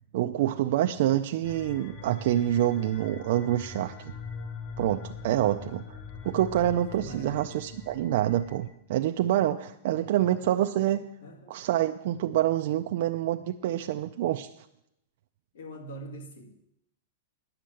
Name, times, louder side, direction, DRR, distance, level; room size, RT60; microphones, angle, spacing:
voice 1, 0.1-4.1 4.8-6.0 6.2-11.0 11.5-14.5, right 12 dB, 50° right, 6 dB, 0.4 m, -27 dB
sound 1, 1.4-8.7, left 5 dB, 35° left, 1.0 m, -42 dB
voice 2, 6.7-7.5 10.4-10.7 11.2-11.6 15.5-16.5, right 1 dB, 75° left, 6 dB, 1.9 m, -43 dB
10.0 x 6.5 x 7.7 m, 0.81 s
supercardioid pair, 175°, 0 cm